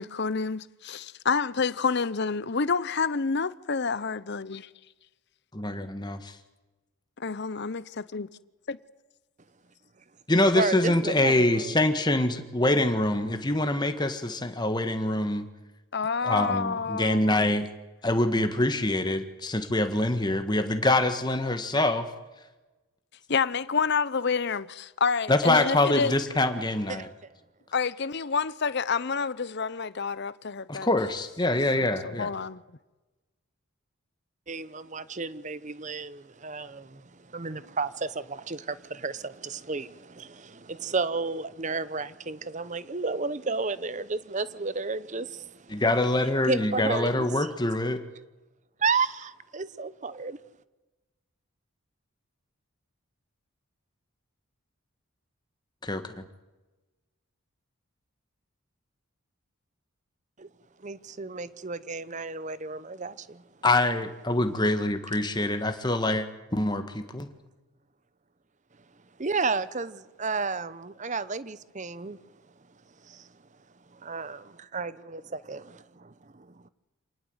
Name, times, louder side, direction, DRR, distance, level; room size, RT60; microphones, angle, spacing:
voice 1, 0.0-4.7 7.2-8.3 8.7-8.8 15.9-17.5 23.3-26.1 27.7-30.9 31.7-32.6, left 5 dB, 50° left, 0.7 m, -28 dB
voice 2, 5.5-6.4 10.3-15.5 16.2-17.7 18.0-22.1 25.3-27.1 30.7-32.3 45.7-48.0 55.8-56.2 63.6-66.3 66.5-67.3, left 1 dB, 20° left, 1.7 m, -25 dB
voice 3, 10.5-11.7 26.9-27.1 34.5-45.8 46.4-47.5 48.8-50.4 60.4-60.5 60.8-63.4 69.2-72.2 73.0-73.3 73.9-76.7, right 4 dB, 35° right, 0.8 m, -32 dB
27.0 x 19.0 x 8.0 m
head